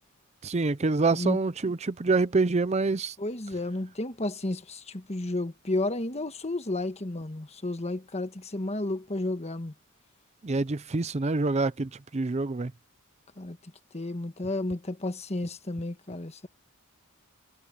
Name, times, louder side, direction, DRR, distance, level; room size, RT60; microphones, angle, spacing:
voice 1, 0.4-3.1 10.4-12.7, right 3 dB, 30° right, 0.5 m, -26 dB
voice 2, 1.1-1.7 3.2-9.7 13.4-16.5, left 2 dB, 30° left, 1.4 m, -32 dB
head